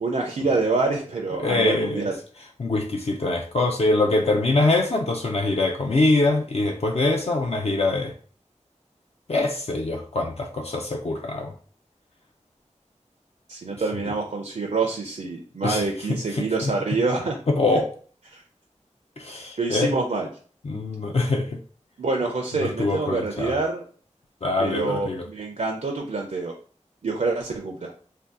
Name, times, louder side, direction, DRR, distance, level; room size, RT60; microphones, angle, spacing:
voice 1, 0.0-2.2 13.5-17.4 17.7-17.8 18.3-18.4 19.6-20.3 22.0-23.8 24.6-26.5 27.0-27.9, right 3 dB, 70° right, 2 dB, 0.4 m, -26 dB
voice 2, 1.4-2.1 2.6-8.1 9.3-11.5 15.6-15.8 16.1-16.7 17.5-17.9 19.2-19.9 20.7-21.6 22.6-23.5 24.4-25.2, left 2 dB, 55° left, 2 dB, 0.4 m, -24 dB
2.6 x 2.2 x 3.5 m, 0.43 s
wide cardioid pair, 50°, 13 cm